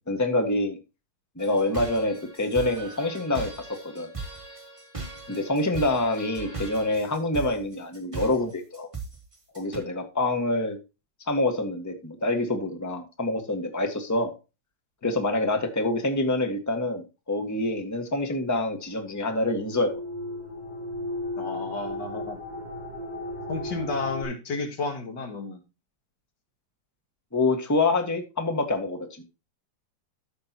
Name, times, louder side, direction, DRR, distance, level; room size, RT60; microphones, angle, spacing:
voice 1, 0.1-0.8 1.4-3.7 3.9-4.1 5.3-8.9 9.5-10.8 11.3-14.3 15.0-19.9 27.3-29.2, left 2 dB, 10° left, 5 dB, 1.4 m, -26 dB
sound 1, 1.4-9.8, right 4 dB, 15° right, 2.8 m, -38 dB
sound 2, 19.5-24.2, left 2 dB, 50° left, 4.7 m, -35 dB
voice 2, 21.4-22.4 23.5-25.6, left 3 dB, 65° left, 6 dB, 2.1 m, -32 dB
13.5 x 6.3 x 2.9 m, 0.28 s
omnidirectional pair, 2.1 m